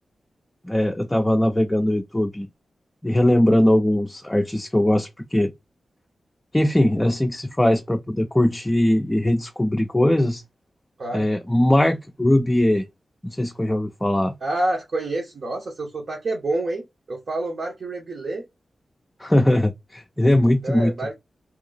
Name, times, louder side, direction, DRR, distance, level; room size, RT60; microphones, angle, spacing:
voice 1, 0.6-2.5 3.0-5.5 6.5-10.4 11.1-12.9 13.2-14.3 19.2-21.1, left 1 dB, 15° left, 0.4 m, -20 dB
voice 2, 14.4-18.4 20.6-21.1, right 2 dB, 65° right, 0.9 m, -28 dB
2.9 x 2.3 x 3.8 m
cardioid pair, 65°, 0 cm